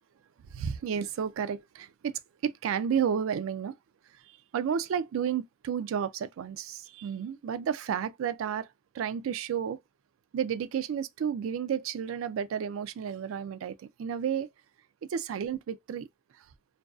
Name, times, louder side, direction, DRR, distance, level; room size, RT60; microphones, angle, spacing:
voice 1, 0.5-2.1 2.4-3.7 4.5-8.7 8.9-9.8 10.3-14.5 15.1-16.1, right 8 dB, 85° right, 0.3 m, -31 dB
2.5 x 2.3 x 2.3 m
head